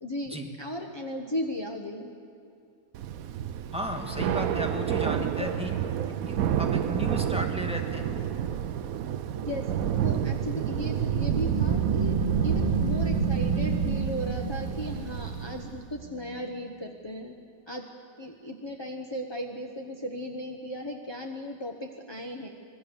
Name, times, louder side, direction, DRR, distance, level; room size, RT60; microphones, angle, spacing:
voice 1, 0.0-2.1 5.4-5.5 9.4-9.7 10.0-17.4 17.7-17.8 18.2-22.5, equal, 20° left, 2 dB, 0.8 m, -36 dB
Thunder / Rain, 2.9-15.8, right 9 dB, 65° right, 0.9 m, -30 dB
voice 2, 3.7-5.7 6.3-8.1, equal, 5° right, 2 dB, 1.6 m, -34 dB
sound 1, 11.3-16.6, right 5 dB, 80° right, 1.8 m, -29 dB
26.0 x 21.0 x 6.9 m, 2.5 s
omnidirectional pair, 2.1 m